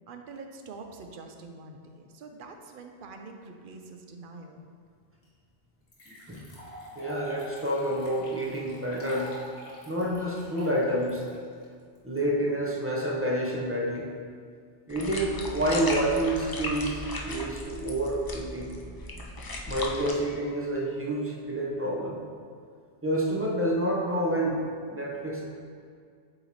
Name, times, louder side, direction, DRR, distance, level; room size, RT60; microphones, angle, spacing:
voice 1, 0.1-4.6, right 3 dB, 60° right, 4 dB, 0.7 m, -45 dB
sound 1, 5.2-5.3 5.9-12.2, equal, 70° left, 1.5 m, -47 dB
voice 2, 6.1-6.4 7.0-9.3 9.9-11.2 12.0-14.1 14.9-18.7 19.7-22.2 23.0-24.6 24.9-25.5, right 1 dB, 15° right, -3 dB, 0.5 m, -28 dB
sound 2, 14.9-20.1, left 1 dB, 35° left, 0.3 m, -36 dB
7.6 x 3.1 x 4.0 m, 2.2 s
omnidirectional pair, 1.1 m